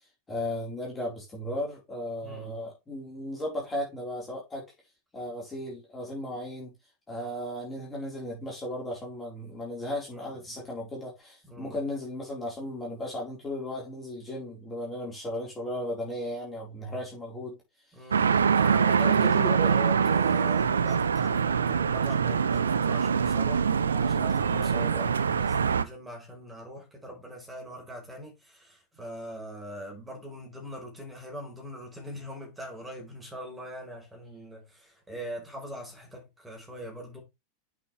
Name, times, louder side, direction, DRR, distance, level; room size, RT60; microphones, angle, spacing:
voice 1, 0.3-4.6 5.1-6.7 7.1-17.6 19.0-19.7 23.8-24.2 24.5-25.2, left 1 dB, 15° left, 4.4 m, -36 dB
voice 2, 2.2-2.7 10.1-10.6 11.5-11.8 17.9-23.9 24.2-37.2, equal, 10° right, 4.9 m, -42 dB
sound 1, 18.1-25.8, right 6 dB, 70° right, 0.7 m, -24 dB
8.8 x 6.1 x 3.4 m
figure-of-eight pair, 90°, 0 cm